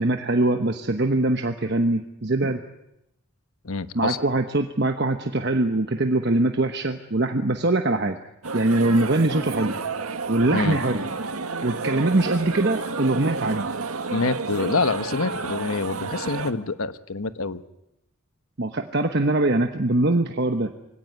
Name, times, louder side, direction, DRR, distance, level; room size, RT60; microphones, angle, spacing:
voice 1, 0.0-2.6 3.9-8.2 8.5-9.8 10.3-11.1 11.6-13.7 18.6-20.7, right 2 dB, 50° right, 6 dB, 1.1 m, -22 dB
voice 2, 3.6-4.2 10.5-10.8 14.1-17.6, left 3 dB, 75° left, 12 dB, 1.2 m, -26 dB
sound 1, 8.4-16.5, right 4 dB, 80° right, 1.7 m, -30 dB
24.0 x 17.0 x 9.6 m, 0.86 s
head